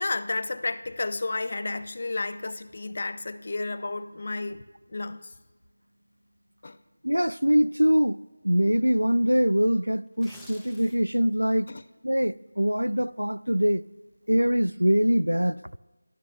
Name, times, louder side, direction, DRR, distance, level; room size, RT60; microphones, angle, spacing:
voice 1, 0.0-4.6 4.9-5.3 6.6-6.8 11.7-11.8, left 3 dB, 40° left, 0.5 m, -32 dB
voice 2, 7.0-8.2 8.4-11.7 12.0-13.8 14.3-15.6, equal, 90° right, 0.3 m, -23 dB
sound 1, 10.1-11.2 11.6-11.8, left 1 dB, ahead, 0.7 m, -50 dB
21.0 x 12.5 x 2.2 m
figure-of-eight pair, 165°, 0 cm